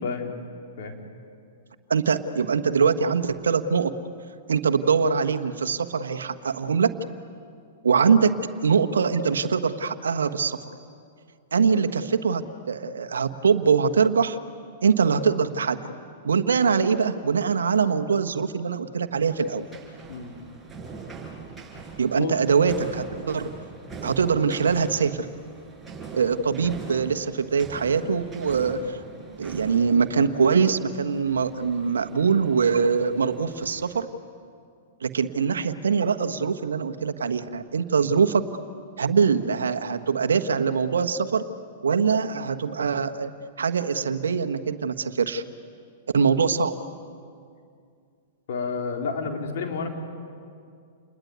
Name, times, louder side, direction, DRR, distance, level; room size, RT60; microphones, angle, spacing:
voice 1, 0.0-0.4 0.8-1.0 20.1-20.3 22.2-22.4 38.0-38.1 48.5-49.9, left 5 dB, 65° left, 3 dB, 4.0 m, -30 dB
voice 2, 1.9-3.9 4.5-6.9 7.8-8.3 8.6-10.6 11.5-14.4 14.8-15.8 16.2-19.7 22.0-23.5 24.0-25.3 26.1-29.0 29.4-34.1 35.0-38.4 39.0-41.4 41.8-43.3 43.6-45.4 46.1-46.7, right 6 dB, 85° right, 8 dB, 1.4 m, -23 dB
sound 1, 19.1-34.0, right 4 dB, 5° right, 5.8 m, -42 dB
29.0 x 21.0 x 9.5 m, 2.3 s
hypercardioid pair, 115°, 0 cm